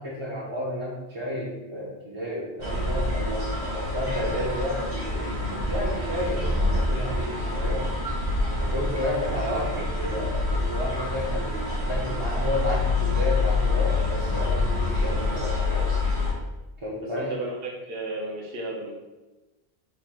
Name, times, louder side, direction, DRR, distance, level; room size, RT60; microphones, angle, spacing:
voice 1, 0.0-7.9 8.6-15.9 16.8-17.3, left 1 dB, 30° right, -7 dB, 0.7 m, -31 dB
sound 1, 2.6-16.3, left 2 dB, 85° right, 1.6 m, -26 dB
voice 2, 17.0-18.9, right 2 dB, 65° right, -3 dB, 1.0 m, -33 dB
4.1 x 2.5 x 4.3 m, 1.1 s
omnidirectional pair, 1.1 m